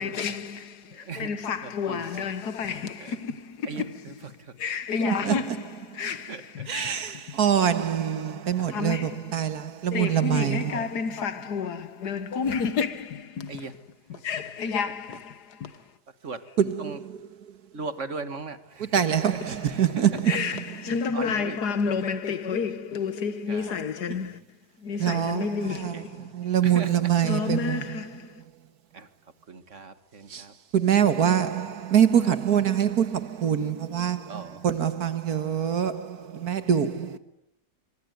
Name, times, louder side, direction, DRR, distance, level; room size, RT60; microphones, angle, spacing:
voice 1, 0.0-7.4 8.7-9.7 9.9-13.7 14.1-16.0 19.4-19.7 20.1-26.3 27.2-28.4, left 5 dB, 75° left, 1.9 m, -31 dB
voice 2, 0.9-1.4 1.6-2.1 2.7-3.1 3.7-4.1 4.4-4.5 5.2-5.3 6.3-6.7 7.6-7.7 8.6-8.7 10.4-10.9 13.5-13.7 14.1-14.2 16.2-16.4 16.8-17.0 17.7-19.4 19.7-19.8 21.1-21.6 23.5-23.7 25.9-26.3 26.6-26.9 28.9-29.1 29.5-30.5 31.3-31.6 32.2-32.3 34.3-34.7 36.3-36.5, right 4 dB, 45° right, 2.0 m, -39 dB
voice 3, 6.7-10.7 16.6-17.2 18.9-20.4 25.0-25.5 25.8-25.9 26.2-27.8 30.3-30.4 30.7-37.2, right 9 dB, 70° right, 1.9 m, -24 dB
25.5 x 23.5 x 9.4 m
omnidirectional pair, 1.7 m